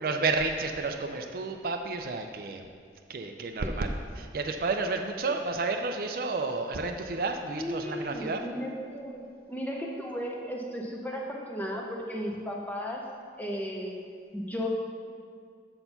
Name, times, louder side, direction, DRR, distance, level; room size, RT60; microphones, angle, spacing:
voice 1, 0.0-2.7 3.1-8.4, right 3 dB, 50° right, 5 dB, 0.4 m, -31 dB
voice 2, 7.6-13.0 13.4-14.1 14.3-14.7, equal, 10° left, -1 dB, 0.7 m, -35 dB
6.7 x 4.3 x 5.7 m, 2.1 s
head